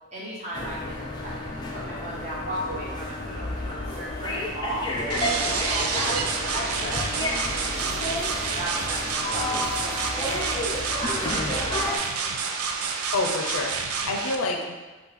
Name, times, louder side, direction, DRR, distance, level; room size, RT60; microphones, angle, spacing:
voice 1, 0.1-10.7 11.0-12.3, right 1 dB, 30° right, -8 dB, 1.4 m, -36 dB
sound 1, 0.5-12.0, left 1 dB, 20° left, 0.4 m, -31 dB
sound 2, 4.8-9.6, right 1 dB, 15° right, 0.8 m, -41 dB
sound 3, 5.1-14.3, right 5 dB, 80° right, 0.4 m, -29 dB
voice 2, 13.1-14.9, left 2 dB, 70° left, 2 dB, 0.5 m, -28 dB
5.5 x 2.3 x 4.0 m, 1.2 s
head